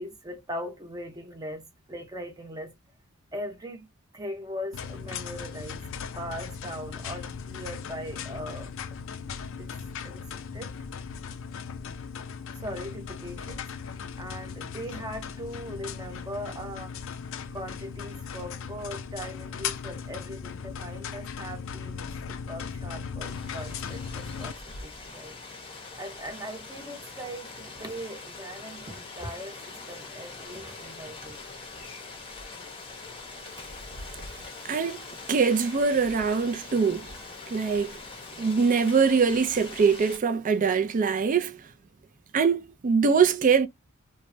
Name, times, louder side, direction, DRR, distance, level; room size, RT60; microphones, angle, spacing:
voice 1, 0.0-2.7 3.3-5.9 6.2-8.7 9.4-9.7 10.0-10.2 10.5-10.7 12.5-17.0 17.5-25.4 26.0-31.4, equal, 20° right, 0.8 m, -40 dB
sound 1, 4.7-24.5, left 6 dB, 65° left, 0.4 m, -38 dB
Rain, 23.2-40.2, left 3 dB, 25° left, 0.7 m, -43 dB
voice 2, 34.6-35.0 35.3-37.1 37.5-38.0 38.4-41.6 42.3-43.7, right 5 dB, 40° right, 0.4 m, -23 dB
3.1 x 2.1 x 2.6 m
head